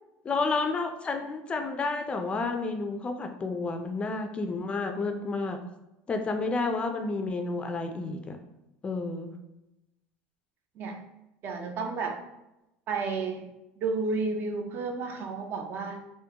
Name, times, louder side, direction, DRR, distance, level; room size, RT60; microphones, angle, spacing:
voice 1, 0.2-5.6 6.1-8.4 8.8-9.3, left 3 dB, 25° left, 5 dB, 0.3 m, -30 dB
voice 2, 11.4-12.2 12.9-16.0, right 4 dB, 50° right, 4 dB, 0.5 m, -32 dB
3.6 x 2.1 x 2.8 m, 0.93 s
supercardioid pair, 115°, 5 cm